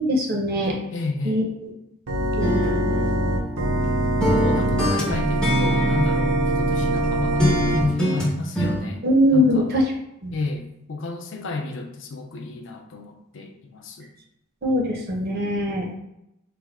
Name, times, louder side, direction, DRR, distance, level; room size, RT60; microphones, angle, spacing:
voice 1, 0.0-0.8 1.2-1.7 2.2-2.7 9.0-9.8 10.2-10.3 14.6-15.9, equal, 45° right, 0 dB, 0.6 m, -22 dB
voice 2, 0.9-1.4 4.2-9.1 9.3-9.7 10.3-14.1, left 3 dB, 60° left, 3 dB, 0.4 m, -32 dB
Organ, 2.1-7.9, right 1 dB, 85° right, 0.6 m, -23 dB
sound 1, 2.4-3.9 4.2-7.1 7.4-8.8, equal, 5° left, 0.5 m, -24 dB
3.3 x 2.0 x 3.5 m, 0.85 s
head